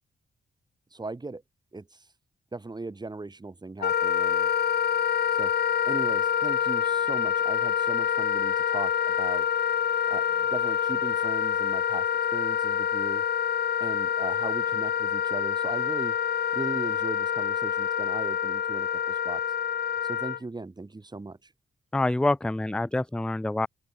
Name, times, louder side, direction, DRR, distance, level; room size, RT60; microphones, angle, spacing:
voice 1, 0.9-1.4 1.7-2.1 2.5-4.5 5.3-5.5 5.9-9.5 10.1-12.1 12.3-13.2 13.8-16.2 16.5-19.4 20.0-21.5, right 3 dB, 25° right, 3.5 m, -38 dB
Wind instrument woodwind instrument, 3.8-20.4, left 8 dB, 65° left, 1.2 m, -26 dB
voice 2, 21.9-23.7, left 2 dB, 5° left, 0.5 m, -26 dB
open air
cardioid pair, 105°, 18 cm